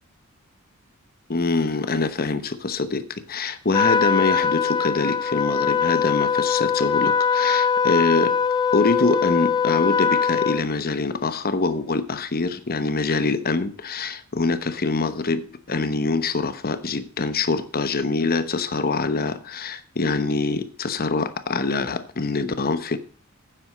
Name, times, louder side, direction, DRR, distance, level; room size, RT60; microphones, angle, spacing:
voice 1, 1.3-8.4 8.7-23.0, left 3 dB, 45° left, 1.0 m, -24 dB
Trumpet, 3.7-10.6, left 6 dB, 20° left, 0.4 m, -21 dB
9.7 x 7.7 x 6.1 m
head